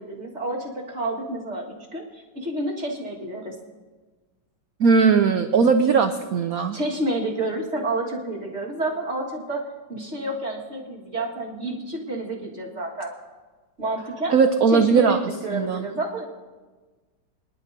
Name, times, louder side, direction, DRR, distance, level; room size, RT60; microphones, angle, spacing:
voice 1, 0.0-3.6 6.7-9.6 9.9-13.1 13.8-14.3 14.7-16.2, right 1 dB, 35° right, -3 dB, 2.0 m, -29 dB
voice 2, 4.8-6.8 14.3-15.2 15.5-15.9, right 5 dB, 90° right, 8 dB, 0.7 m, -19 dB
25.0 x 11.0 x 2.7 m, 1.3 s
omnidirectional pair, 2.3 m